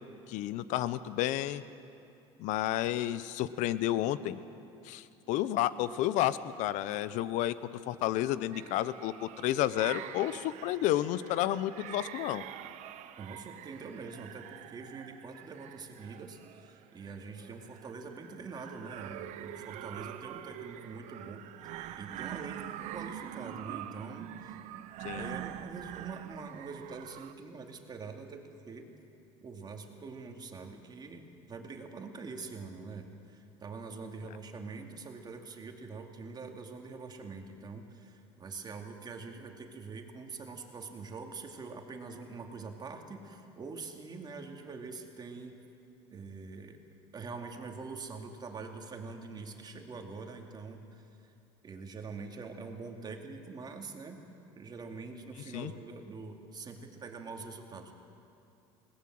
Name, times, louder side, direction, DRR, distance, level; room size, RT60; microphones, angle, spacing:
voice 1, 0.3-1.6 2.4-4.4 4.8-7.5 7.9-12.4 25.0-25.4 55.5-55.7, left 13 dB, 65° left, 15 dB, 0.9 m, -31 dB
sound 1, 8.5-27.3, right 12 dB, 60° right, 1.0 m, -45 dB
voice 2, 13.2-21.4 22.0-24.6 25.1-28.9 29.4-45.6 46.1-46.8 47.1-51.3 51.6-54.2 54.5-57.9, right 4 dB, 30° right, 3 dB, 2.6 m, -44 dB
21.0 x 18.5 x 7.8 m, 2.6 s
supercardioid pair, 95°, 14 cm